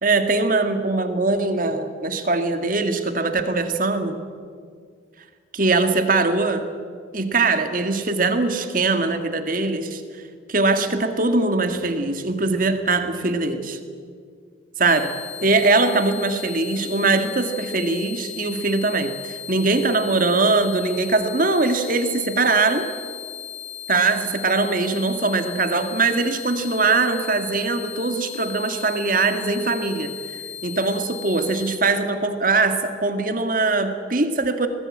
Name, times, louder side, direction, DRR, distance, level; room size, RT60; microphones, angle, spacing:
voice 1, 0.0-4.2 5.5-6.7 7.1-10.0 10.5-13.8 14.8-15.1 15.4-22.9 23.9-30.1 30.6-34.7, right 3 dB, 45° right, 7 dB, 1.8 m, -21 dB
sound 1, 14.9-31.8, left 11 dB, 75° left, 2.3 m, -37 dB
21.5 x 18.5 x 8.8 m, 2.1 s
head